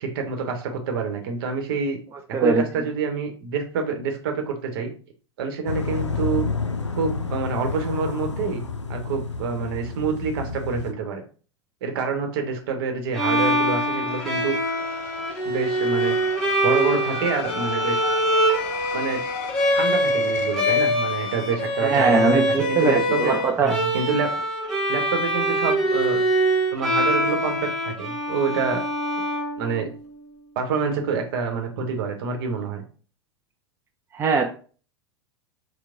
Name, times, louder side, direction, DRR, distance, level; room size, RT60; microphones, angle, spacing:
voice 1, 0.0-2.0 2.4-4.9 5.4-6.5 7.0-8.6 8.9-11.2 11.8-14.6 15.4-18.0 18.9-19.2 19.7-23.4 23.6-24.3 24.9-26.2 26.7-28.8 29.6-29.9 30.6-32.8, right 5 dB, 55° right, 4 dB, 1.0 m, -27 dB
voice 2, 2.3-2.6 21.8-23.8 34.1-34.4, right 4 dB, 15° right, 2 dB, 0.5 m, -21 dB
sound 1, 5.7-10.9, left 4 dB, 90° left, 0.4 m, -29 dB
Bowed string instrument, 13.1-30.1, equal, 5° left, 1.2 m, -24 dB
sound 2, 13.7-23.6, left 6 dB, 40° left, 0.6 m, -38 dB
4.5 x 2.2 x 3.7 m, 0.39 s
figure-of-eight pair, 90°, 15 cm